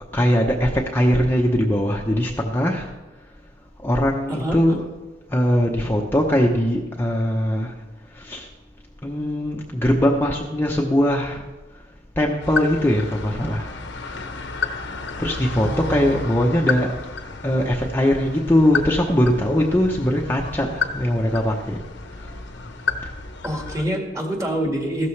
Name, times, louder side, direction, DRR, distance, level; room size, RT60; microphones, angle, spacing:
voice 1, 0.1-2.9 3.8-4.9 5.3-7.7 8.1-8.5 9.0-11.4 11.7-11.8 12.2-14.2 15.2-16.9 17.2-21.8 22.1-22.3 23.0-23.1, equal, 10° left, -1 dB, 0.8 m, -21 dB
voice 2, 4.3-4.6 15.6-16.2 23.4-25.1, equal, 20° right, 2 dB, 1.8 m, -26 dB
sound 1, 12.4-23.9, left 4 dB, 70° left, 1.0 m, -31 dB
15.0 x 13.0 x 3.3 m, 1.2 s
head